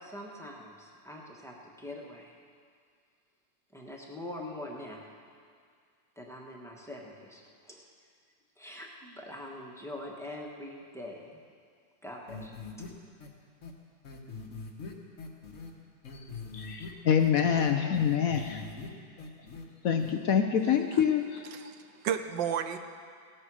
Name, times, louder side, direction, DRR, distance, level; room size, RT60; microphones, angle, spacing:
voice 1, 0.0-2.3 3.7-5.0 6.2-7.8 8.6-11.4 12.0-12.5, left 1 dB, ahead, -2 dB, 1.3 m, -43 dB
sound 1, 12.3-12.9 13.2-13.3 13.6-13.7 14.0-15.7 16.0-16.9 17.2-18.9 19.2-19.6 20.0-20.1, left 4 dB, 45° left, 1.5 m, -42 dB
voice 2, 16.5-18.6 19.8-21.5, left 8 dB, 65° left, 6 dB, 0.9 m, -26 dB
voice 3, 21.5-22.8, right 8 dB, 75° right, 9 dB, 1.3 m, -32 dB
17.0 x 9.0 x 6.3 m, 2.1 s
omnidirectional pair, 2.1 m